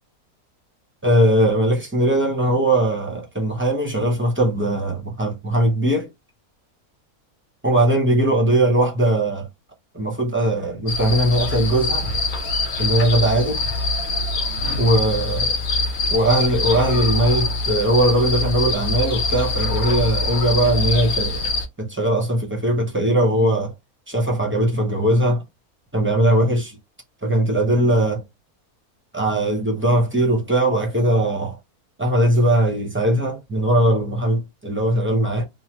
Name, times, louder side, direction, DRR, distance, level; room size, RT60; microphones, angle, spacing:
voice 1, 1.0-6.1 7.6-9.5 9.9-12.1 12.8-13.6 14.8-15.5 16.1-21.5 21.8-23.7 24.1-25.4 25.9-26.8 27.2-28.2 29.1-31.6 32.0-35.4, right 1 dB, 15° right, 0.5 m, -20 dB
sound 1, 10.9-21.7, left 3 dB, 70° left, 1.2 m, -24 dB
3.1 x 2.0 x 2.9 m
omnidirectional pair, 1.6 m